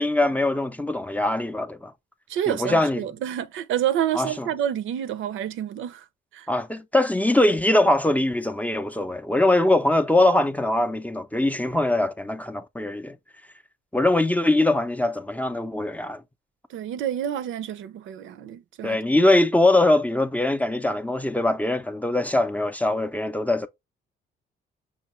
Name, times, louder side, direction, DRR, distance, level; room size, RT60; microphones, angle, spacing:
voice 1, 0.0-1.9 2.5-3.0 4.1-4.5 6.5-13.2 13.9-16.2 18.8-23.7, left 1 dB, 5° left, 0.4 m, -22 dB
voice 2, 2.3-6.1 6.3-6.5 16.7-19.0, right 10 dB, 80° right, 0.5 m, -28 dB
5.5 x 2.7 x 3.0 m
cardioid pair, 90°, 20 cm